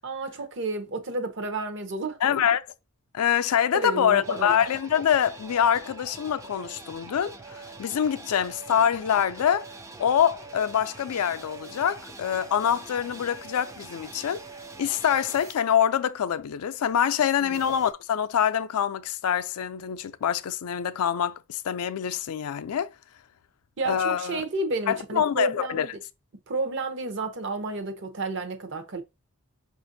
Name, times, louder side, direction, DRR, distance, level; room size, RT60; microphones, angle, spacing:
voice 1, 0.0-2.5 3.7-4.6 17.4-17.6 23.8-25.9 26.5-29.0, right 3 dB, 55° right, 0.7 m, -31 dB
voice 2, 2.2-2.6 3.1-9.7 10.0-14.4 14.8-22.9 23.9-24.4 24.9-25.9, left 8 dB, 80° left, 0.4 m, -25 dB
sound 1, 4.1-15.5 17.5-17.9, right 3 dB, 15° right, 0.3 m, -44 dB
5.7 x 2.5 x 2.6 m
head